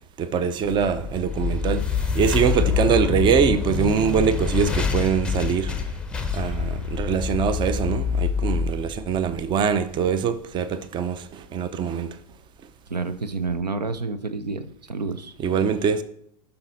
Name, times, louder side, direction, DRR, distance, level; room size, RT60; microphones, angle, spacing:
voice 1, 0.2-5.7 6.3-12.2 15.4-16.0, right 6 dB, 20° right, 0.6 m, -23 dB
sound 1, 0.6-9.8, left 5 dB, 5° left, 0.8 m, -26 dB
voice 2, 12.9-15.3, right 4 dB, 80° right, 0.8 m, -29 dB
11.0 x 5.7 x 4.0 m
figure-of-eight pair, 90°, 21 cm